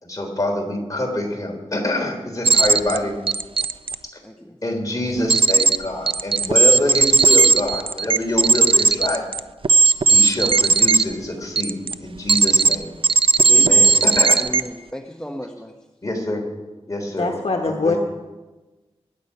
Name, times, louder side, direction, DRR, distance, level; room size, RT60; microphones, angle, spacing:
voice 1, 0.0-3.1 4.6-9.3 10.1-12.9 13.5-14.4 16.0-16.4 16.9-17.3 17.6-17.9, left 1 dB, 35° left, 2 dB, 3.3 m, -25 dB
sound 1, 2.4-3.0 3.3-3.9 5.3-5.8 6.1-11.0 11.6-11.9 12.3-12.7 13.0-14.6, right 3 dB, 55° right, 0.5 m, -15 dB
voice 2, 4.2-4.6 13.4-13.8 14.4-15.7, equal, 5° left, 3 dB, 0.9 m, -34 dB
voice 3, 17.2-18.0, left 3 dB, 70° left, 2 dB, 1.3 m, -22 dB
22.5 x 9.7 x 5.4 m, 1.2 s
wide cardioid pair, 85°, 11 cm